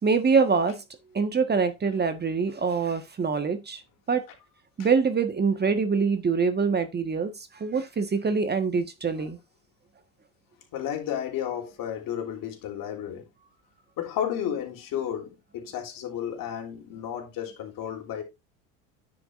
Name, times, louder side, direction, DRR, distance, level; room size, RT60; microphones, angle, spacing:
voice 1, 0.0-0.8 1.1-3.8 4.1-4.2 4.8-9.4, right 5 dB, 25° right, 1.5 m, -24 dB
voice 2, 10.7-13.2 14.0-18.2, left 9 dB, 55° left, 3.5 m, -32 dB
9.9 x 7.6 x 2.6 m
hypercardioid pair, 80°, 41 cm